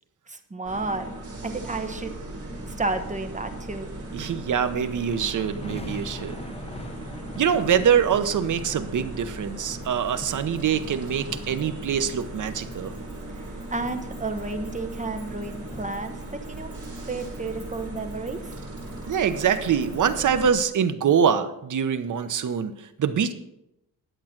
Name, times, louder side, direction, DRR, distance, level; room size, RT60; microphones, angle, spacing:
voice 1, 0.3-1.1 1.4-2.1 2.7-3.9 13.4-16.7 17.1-18.6, right 3 dB, 20° right, 7 dB, 1.0 m, -32 dB
sound 1, 0.6-20.5, right 1 dB, 40° right, 3.9 m, -38 dB
voice 2, 4.1-6.4 7.4-12.9 19.1-23.3, right 7 dB, 55° right, 10 dB, 0.9 m, -24 dB
sound 2, 5.0-15.9, left 2 dB, 15° left, 0.8 m, -44 dB
Keys jangling, 9.8-20.4, right 1 dB, 5° right, 4.6 m, -57 dB
11.0 x 7.7 x 5.9 m, 0.84 s
wide cardioid pair, 145°, 36 cm